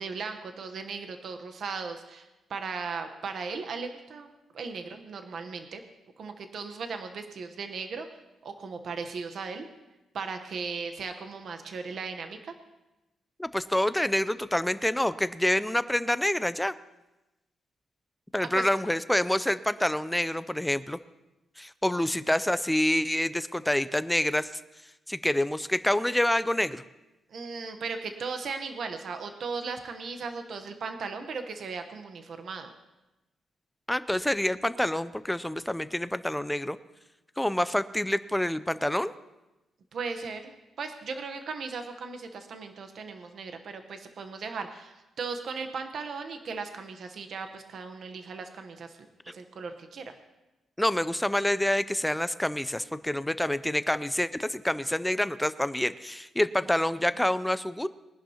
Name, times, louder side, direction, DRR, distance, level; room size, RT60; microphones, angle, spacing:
voice 1, 0.0-4.3 4.5-5.8 6.2-8.1 8.4-9.7 10.1-12.4 18.4-18.7 27.3-32.7 39.9-40.5 40.8-48.9 49.3-50.1, right 5 dB, 55° right, 6 dB, 1.0 m, -37 dB
voice 2, 13.4-16.7 18.3-21.0 21.6-24.5 25.1-26.8 33.9-36.8 37.4-39.1 50.8-57.9, left 1 dB, 5° left, 14 dB, 0.4 m, -27 dB
22.5 x 11.0 x 2.9 m, 1.0 s
cardioid pair, 140°, 0 cm